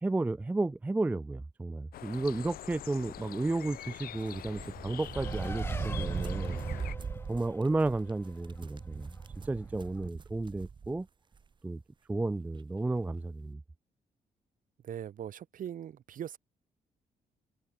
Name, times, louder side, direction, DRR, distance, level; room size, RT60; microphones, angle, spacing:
voice 1, 0.0-6.6 7.3-9.1 9.4-11.1 11.6-11.8 12.1-13.6, right 2 dB, 10° right, 0.3 m, -32 dB
sound 1, 1.9-7.0, left 12 dB, 80° left, 1.4 m, -45 dB
sound 2, 4.3-11.0 11.3-11.4 12.5-12.6 12.9-13.2, right 5 dB, 30° right, 1.1 m, -39 dB
Race car auto racing, 5.1-10.1, left 2 dB, 15° left, 3.0 m, -47 dB
voice 2, 14.8-16.4, right 10 dB, 65° right, 2.9 m, -40 dB
cardioid pair, 115°, 15 cm